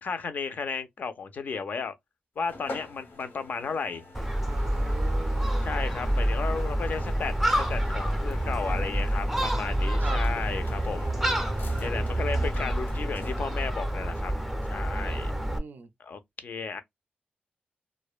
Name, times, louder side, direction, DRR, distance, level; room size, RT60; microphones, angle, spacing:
voice 1, 0.0-1.9 2.4-4.0 5.6-11.1 11.8-14.3 14.7-15.3 16.0-16.8, left 5 dB, 60° left, 0.4 m, -34 dB
sound 1, 2.4-13.7, left 3 dB, 85° left, 0.9 m, -45 dB
Gull seagull, 4.1-15.6, right 1 dB, 5° right, 0.5 m, -28 dB
voice 2, 4.5-5.7 9.9-10.2 10.9-12.0 15.1-15.9, right 5 dB, 70° right, 0.4 m, -43 dB
2.5 x 2.1 x 2.3 m
wide cardioid pair, 170°, 3 cm